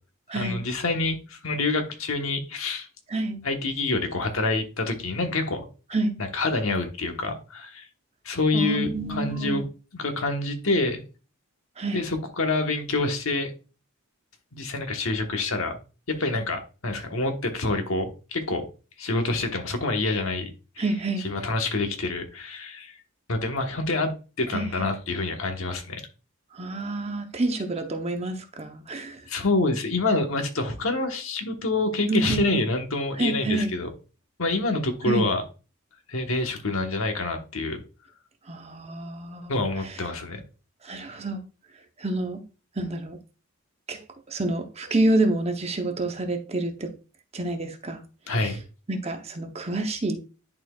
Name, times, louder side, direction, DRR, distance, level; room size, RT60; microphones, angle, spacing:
voice 1, 0.3-2.9 3.4-5.7 6.2-7.9 8.2-9.6 9.9-11.0 11.9-13.5 14.5-15.8 16.1-18.6 19.0-20.5 20.8-20.9 21.2-23.0 23.3-24.1 24.4-26.0 29.3-33.9 34.4-35.4 36.1-37.8 39.5-40.4 48.3-48.6, left 2 dB, 75° left, 1.2 m, -27 dB
voice 2, 3.1-3.4 5.9-6.2 8.5-9.6 11.8-12.0 20.8-21.2 24.5-24.6 26.5-29.2 32.1-32.6 33.2-33.7 35.0-35.3 38.5-39.6 40.8-41.4 42.0-42.4 42.8-43.2 43.9-44.0 44.3-46.9 47.3-48.0 48.4-48.5 48.9-50.2, right 2 dB, 30° right, 0.8 m, -28 dB
10.5 x 4.4 x 2.4 m
head